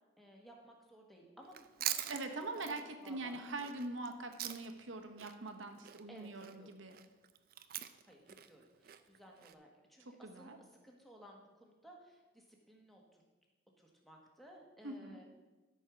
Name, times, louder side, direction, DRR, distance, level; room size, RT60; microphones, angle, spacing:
voice 1, 0.2-3.5 6.1-6.8 8.0-13.2 13.8-15.3, right 1 dB, ahead, -1 dB, 1.4 m, -58 dB
Chewing mastication, 1.4-4.9 5.2-9.5, right 11 dB, 50° right, 0.4 m, -43 dB
voice 2, 2.1-2.8 3.1-7.0 10.2-10.6 14.8-15.2, right 2 dB, 80° right, 5 dB, 1.1 m, -43 dB
13.0 x 4.6 x 5.8 m, 1.2 s
head